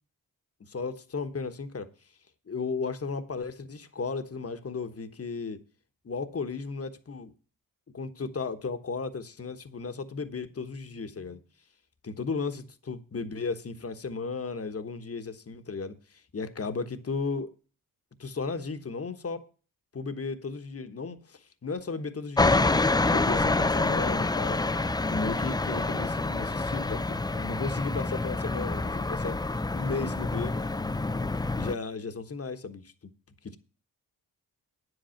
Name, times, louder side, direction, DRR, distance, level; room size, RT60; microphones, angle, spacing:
voice 1, 0.7-1.9 2.5-5.6 6.0-7.3 7.9-11.4 12.0-17.5 18.2-19.5 19.9-24.6 25.1-29.4 29.7-30.5 31.6-32.9, left 4 dB, 40° left, 1.3 m, -35 dB
sound 1, 22.4-31.7, left 3 dB, 10° left, 0.4 m, -27 dB
9.6 x 8.1 x 5.8 m
cardioid pair, 65°, 37 cm